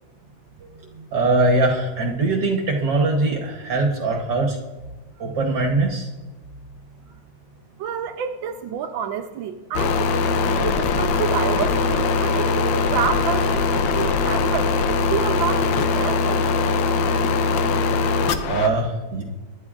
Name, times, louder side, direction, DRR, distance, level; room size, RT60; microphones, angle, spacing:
voice 1, 0.6-4.6 5.2-6.1 18.5-19.2, right 2 dB, 65° right, 1 dB, 1.6 m, -22 dB
voice 2, 7.8-10.1 10.6-16.4, right 8 dB, 85° right, 4 dB, 1.4 m, -28 dB
sound 1, 9.7-18.7, left 4 dB, 85° left, 1.5 m, -21 dB
23.5 x 11.0 x 2.4 m, 1.2 s
omnidirectional pair, 2.1 m